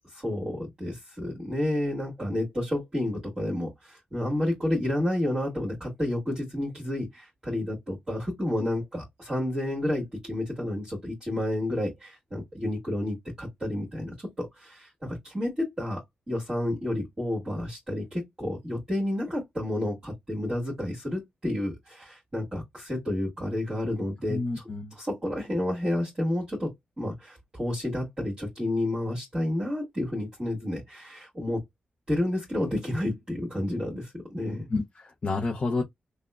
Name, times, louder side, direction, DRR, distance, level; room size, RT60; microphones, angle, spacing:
voice 1, 0.1-16.0 16.3-24.6 24.9-31.6 32.1-34.7, left 1 dB, 25° right, 1.7 m, -30 dB
voice 2, 24.3-24.9 34.7-35.8, left 3 dB, 35° left, 0.6 m, -29 dB
5.8 x 2.1 x 2.3 m
wide cardioid pair, 155°, 3 cm